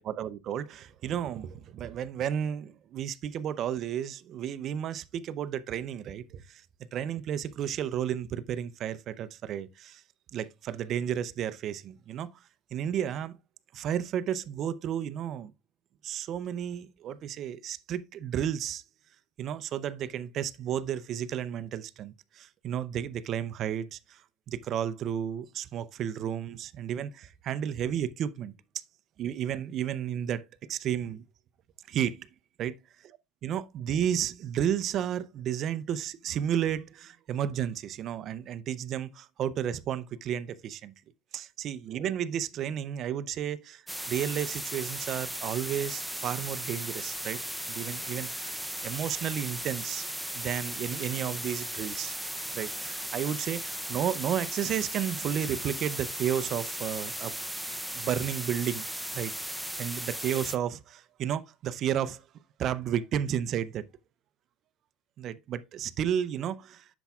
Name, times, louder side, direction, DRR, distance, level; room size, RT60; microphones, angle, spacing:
voice 1, 0.0-6.6 6.9-10.0 10.3-12.3 12.7-13.4 13.7-15.5 16.0-18.8 19.4-24.2 24.5-28.5 29.2-30.4 30.7-31.2 31.9-32.3 32.6-32.7 33.4-40.9 41.3-47.4 47.7-48.5 48.8-50.1 50.3-52.2 52.5-57.4 57.9-58.8 59.1-62.2 62.6-63.8 65.2-66.9, right 9 dB, 40° right, 0.6 m, -32 dB
sound 1, 43.9-60.6, equal, ahead, 0.6 m, -36 dB
10.0 x 7.0 x 2.4 m
supercardioid pair, 135°, 0 cm